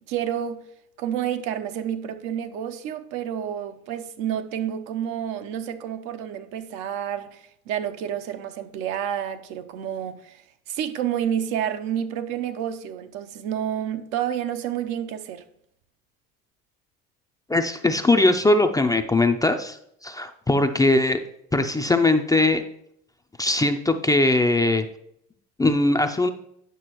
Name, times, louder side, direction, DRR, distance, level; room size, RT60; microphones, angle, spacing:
voice 1, 0.1-0.6 1.0-15.4, right 9 dB, 70° right, 0.8 m, -29 dB
voice 2, 17.5-19.8 20.0-21.2 21.5-22.6 23.4-24.9 25.6-26.3, left 2 dB, 10° left, 0.4 m, -20 dB
9.3 x 6.0 x 3.0 m
hypercardioid pair, 80°, 36 cm